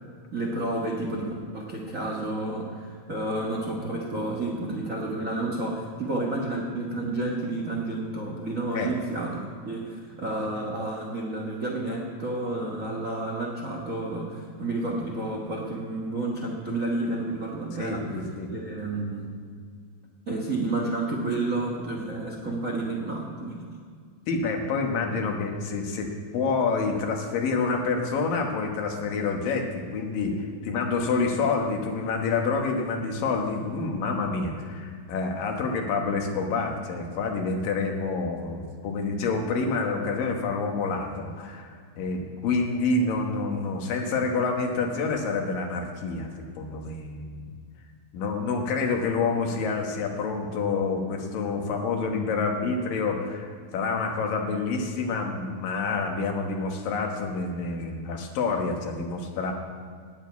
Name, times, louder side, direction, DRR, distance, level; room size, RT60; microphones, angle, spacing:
voice 1, 0.3-19.3 20.3-23.6, right 2 dB, 60° right, -1 dB, 0.8 m, -30 dB
voice 2, 17.8-18.5 24.3-47.4 48.1-59.5, left 4 dB, 75° left, 3 dB, 3.0 m, -28 dB
9.8 x 9.0 x 9.3 m, 2.1 s
omnidirectional pair, 4.1 m